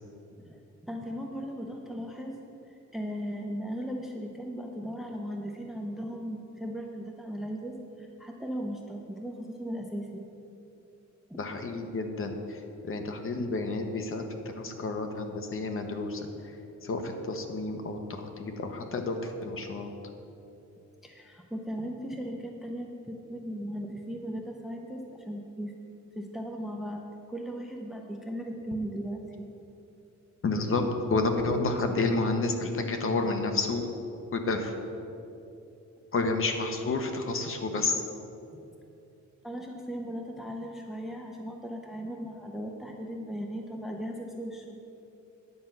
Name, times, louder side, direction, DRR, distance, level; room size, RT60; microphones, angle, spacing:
voice 1, 0.9-2.4 2.9-10.3 11.3-11.4 21.0-25.7 26.2-27.0 27.3-29.5 39.4-44.8, equal, ahead, 2 dB, 0.6 m, -37 dB
voice 2, 11.4-14.2 14.5-16.3 16.8-19.9 30.4-33.9 34.3-34.7 36.1-38.0, left 3 dB, 45° left, 5 dB, 1.0 m, -30 dB
9.7 x 5.4 x 7.6 m, 2.8 s
wide cardioid pair, 140°, 30 cm